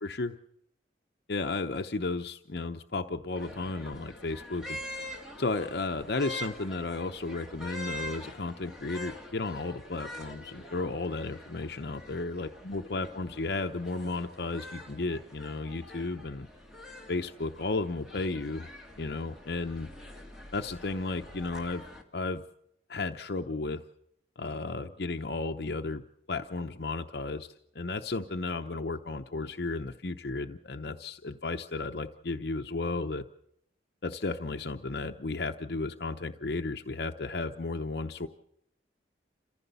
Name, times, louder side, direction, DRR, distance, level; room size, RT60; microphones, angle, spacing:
voice 1, 0.0-0.3 1.3-4.8 5.0-16.5 17.1-18.7 19.0-19.9 20.5-21.8 22.1-22.4 22.9-23.8 24.4-26.0 26.3-33.2 34.0-38.3, left 3 dB, 60° left, 6 dB, 0.8 m, -34 dB
sound 1, 3.4-22.0, left 1 dB, ahead, 2.5 m, -45 dB
28.5 x 15.5 x 6.9 m, 0.75 s
head